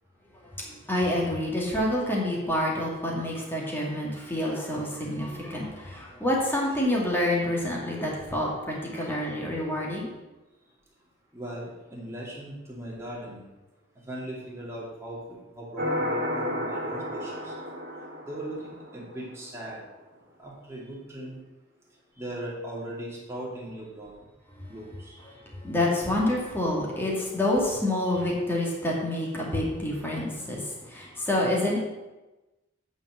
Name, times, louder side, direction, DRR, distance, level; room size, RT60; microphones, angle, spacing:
voice 1, 0.6-10.1 24.6-24.7 25.3-31.8, left 1 dB, 10° left, -4 dB, 2.2 m, -28 dB
voice 2, 11.3-13.5 14.0-17.6 18.2-19.8 20.4-21.4 22.2-24.2 24.7-25.3 28.1-28.2, right 1 dB, 15° right, -5 dB, 2.6 m, -39 dB
sound 1, 15.8-19.2, equal, 55° right, 2.4 m, -32 dB
8.8 x 5.2 x 7.6 m, 1.1 s
head